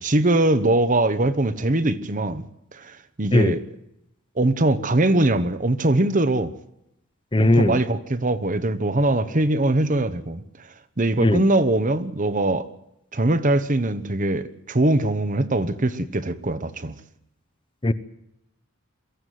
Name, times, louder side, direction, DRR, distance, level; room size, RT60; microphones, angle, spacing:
voice 1, 0.0-2.4 2.7-3.6 4.4-6.5 7.4-10.4 11.0-12.7 13.1-17.0, right 2 dB, 35° right, 1.0 m, -22 dB
voice 2, 7.3-7.8 11.2-11.4 17.8-17.9, left 1 dB, 25° left, 0.8 m, -18 dB
23.0 x 14.5 x 9.3 m
head